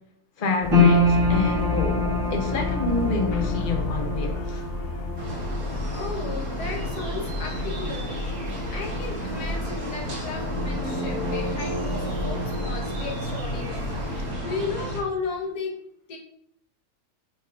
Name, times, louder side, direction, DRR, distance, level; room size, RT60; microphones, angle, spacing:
voice 1, 0.4-4.6, left 3 dB, 40° left, 2 dB, 1.1 m, -28 dB
sound 1, 0.6-14.3, left 3 dB, 55° left, 0.7 m, -31 dB
sound 2, 0.7-13.1 13.4-14.3 14.8-14.9, left 2 dB, 50° right, 2.2 m, -29 dB
sound 3, 5.2-15.0, right 1 dB, 65° right, 2.0 m, -32 dB
voice 2, 5.9-8.1 8.7-15.7 16.1-16.2, left 4 dB, 85° left, -1 dB, 1.8 m, -34 dB
8.9 x 4.6 x 2.6 m, 0.72 s
omnidirectional pair, 1.6 m